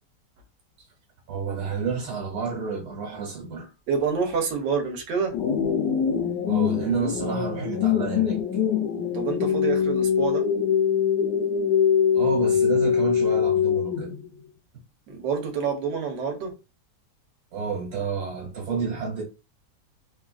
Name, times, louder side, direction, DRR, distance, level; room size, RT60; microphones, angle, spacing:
voice 1, 1.3-3.7 6.5-8.4 12.1-14.1 17.5-19.2, right 5 dB, 70° right, 1.7 m, -30 dB
voice 2, 3.9-5.3 9.1-10.5 15.1-16.5, right 5 dB, 85° right, 1.4 m, -27 dB
sound 1, 5.3-14.3, left 8 dB, 85° left, 1.4 m, -23 dB
3.6 x 2.4 x 2.3 m
omnidirectional pair, 1.9 m